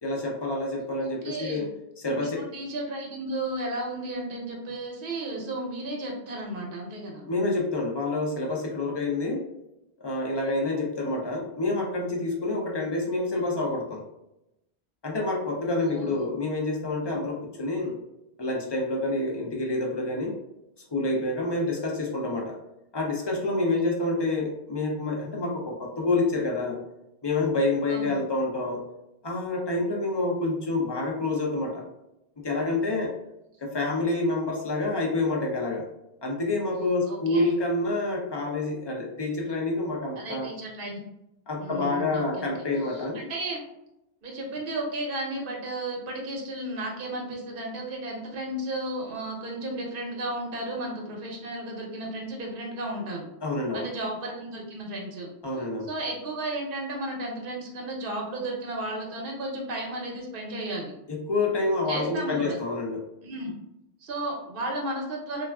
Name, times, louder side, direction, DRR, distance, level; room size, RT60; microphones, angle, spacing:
voice 1, 0.0-1.7 2.0-2.4 7.3-9.4 10.0-14.0 15.0-17.9 18.4-20.3 20.9-22.6 22.9-26.8 27.2-28.8 29.2-31.9 32.4-33.1 33.6-35.8 36.2-40.5 41.5-43.2 53.4-53.9 55.4-55.9 61.1-63.0, left 2 dB, 40° left, -1 dB, 0.4 m, -28 dB
voice 2, 1.0-1.7 2.1-7.3 15.8-16.1 27.9-28.2 37.1-37.4 40.2-41.0 41.6-42.5 42.8-43.6 44.2-53.3 53.7-55.3 55.9-60.9 61.9-62.6 63.2-63.5 64.0-65.4, right 1 dB, 60° right, 0 dB, 0.9 m, -34 dB
3.3 x 2.3 x 2.2 m, 0.88 s
omnidirectional pair, 1.1 m